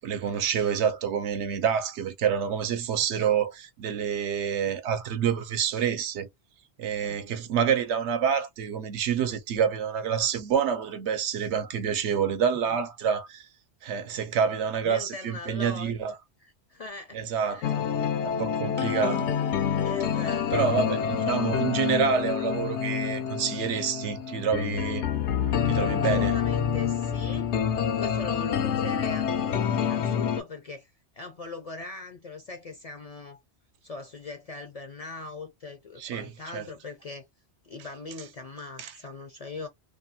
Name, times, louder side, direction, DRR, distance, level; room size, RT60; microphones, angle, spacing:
voice 1, 0.0-6.3 6.8-13.5 13.8-16.2 17.1-17.8 18.2-19.3 20.5-25.1 25.7-26.4 36.0-36.7 38.8-38.9, right 7 dB, 85° right, 0.9 m, -27 dB
voice 2, 14.8-15.9 16.4-17.7 19.8-20.9 26.0-27.5 28.0-33.4 33.8-37.2 37.6-39.7, left 3 dB, 55° left, 0.4 m, -40 dB
sound 1, 17.6-30.4, left 8 dB, 85° left, 0.9 m, -27 dB
2.6 x 2.3 x 2.6 m
omnidirectional pair, 1.1 m